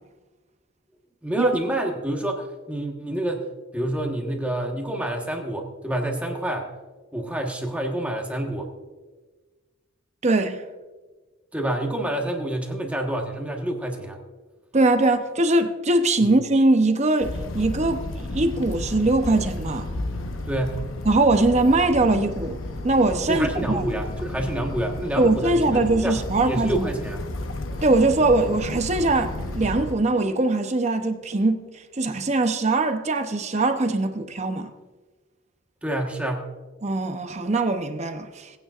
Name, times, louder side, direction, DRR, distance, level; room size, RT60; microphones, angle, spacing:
voice 1, 1.2-3.5 3.7-6.7 7.1-8.7 11.5-14.2 16.2-16.3 20.4-20.8 23.3-27.2 35.8-36.5, right 1 dB, 5° right, 1.3 m, -28 dB
voice 2, 10.2-10.6 14.7-19.9 21.0-23.9 25.2-26.9 27.8-31.7 31.9-34.7 36.8-38.5, right 2 dB, 35° right, 0.8 m, -21 dB
sound 1, 17.2-30.0, left 2 dB, 90° left, 0.9 m, -32 dB
19.0 x 9.1 x 2.5 m
head